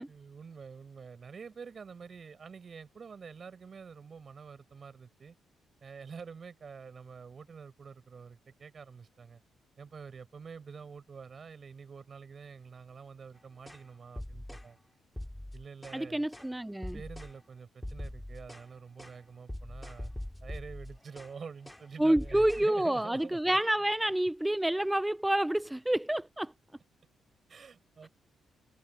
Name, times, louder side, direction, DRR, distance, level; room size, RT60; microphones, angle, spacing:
voice 1, 0.1-5.4 5.8-9.4 9.8-14.8 15.5-16.3 16.9-20.1 20.4-23.4 27.5-28.1, right 5 dB, 45° right, 5.6 m, -47 dB
sound 1, 13.7-13.8 14.2-14.7 15.2-16.0 16.3-16.5 16.8-17.4 17.8-18.7 19.0-19.2 19.5-21.3 21.6-21.9 22.2-22.7, left 1 dB, 10° left, 2.6 m, -42 dB
voice 2, 15.9-17.0 22.0-26.5, right 1 dB, 10° right, 0.3 m, -28 dB
cardioid pair, 70°, 0 cm